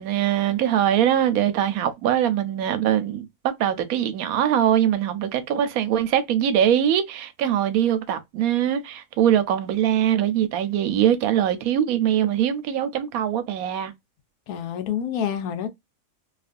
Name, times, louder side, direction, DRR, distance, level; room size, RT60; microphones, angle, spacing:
voice 1, 0.0-3.3 3.6-13.9, right 10 dB, 80° right, 1.0 m, -22 dB
voice 2, 14.5-15.7, left 9 dB, 85° left, 1.1 m, -27 dB
2.7 x 2.4 x 2.5 m
omnidirectional pair, 1.5 m